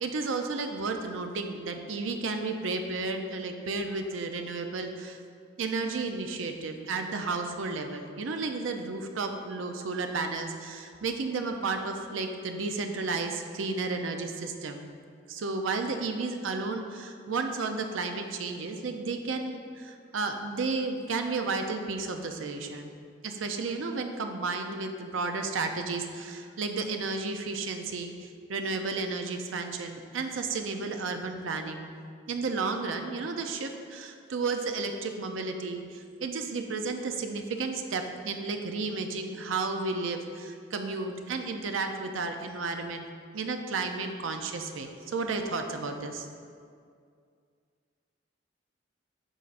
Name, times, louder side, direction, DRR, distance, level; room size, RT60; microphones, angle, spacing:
voice 1, 0.0-5.2 5.6-14.9 15.3-22.9 23.2-31.9 32.3-43.1 43.3-46.3, right 3 dB, 85° right, 5 dB, 0.5 m, -32 dB
8.7 x 5.3 x 2.5 m, 2.2 s
head